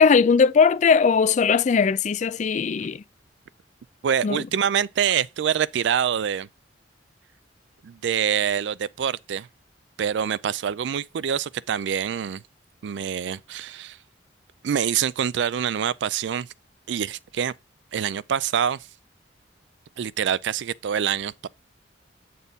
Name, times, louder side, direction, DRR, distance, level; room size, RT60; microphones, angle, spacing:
voice 1, 0.0-3.0 4.2-4.4, left 5 dB, 40° left, 0.3 m, -19 dB
voice 2, 4.0-6.5 7.8-9.5 10.0-12.4 12.8-14.0 14.6-16.5 16.9-17.5 17.9-18.9 20.0-21.5, right 8 dB, 70° right, 0.3 m, -25 dB
8.0 x 4.2 x 3.5 m
head